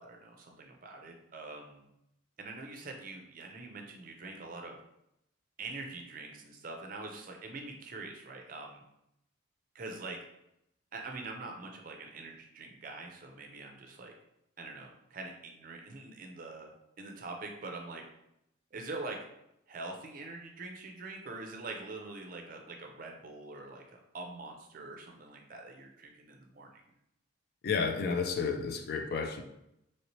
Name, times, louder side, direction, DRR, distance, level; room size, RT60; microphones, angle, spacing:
voice 1, 0.0-1.9 2.4-4.8 5.6-8.8 9.7-10.2 10.9-14.1 14.6-18.0 18.7-19.2 19.7-26.8, right 3 dB, 45° right, 2 dB, 0.5 m, -44 dB
voice 2, 27.6-29.4, left 5 dB, 50° left, 5 dB, 0.3 m, -31 dB
3.0 x 2.8 x 3.0 m, 0.82 s
head